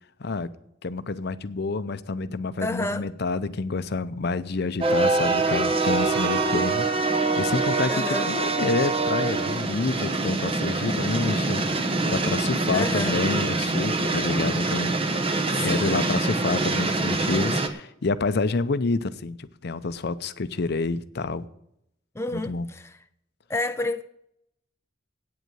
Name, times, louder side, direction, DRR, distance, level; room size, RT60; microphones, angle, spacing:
voice 1, 0.8-15.0 15.6-21.5 22.3-22.7, left 3 dB, 55° left, 0.6 m, -28 dB
voice 2, 2.6-3.1 7.9-8.3 12.7-13.2 15.5-16.0 22.2-22.9 23.5-24.0, left 2 dB, 15° left, 0.4 m, -29 dB
sound 1, 4.8-17.7, right 3 dB, 30° right, 1.0 m, -25 dB
8.9 x 8.2 x 8.9 m
head